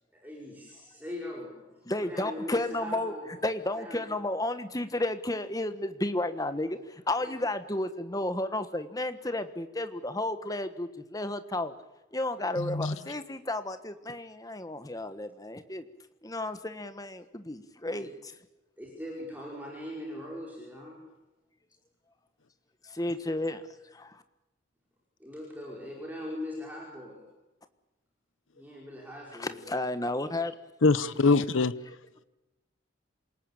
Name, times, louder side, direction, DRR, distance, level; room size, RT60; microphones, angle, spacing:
voice 1, 0.2-3.4 3.8-4.1 7.3-7.4 17.8-18.1 18.8-21.0 25.2-27.2 28.5-29.6, left 1 dB, 10° right, -3 dB, 5.2 m, -41 dB
voice 2, 1.9-3.1 3.4-11.7 12.1-15.8 16.2-18.3 22.8-23.6 23.9-24.2 29.4-30.5, left 1 dB, 20° left, 10 dB, 1.4 m, -32 dB
voice 3, 12.6-12.9 30.8-31.7, left 3 dB, 90° left, 15 dB, 0.9 m, -23 dB
27.5 x 18.5 x 8.9 m, 1.0 s
head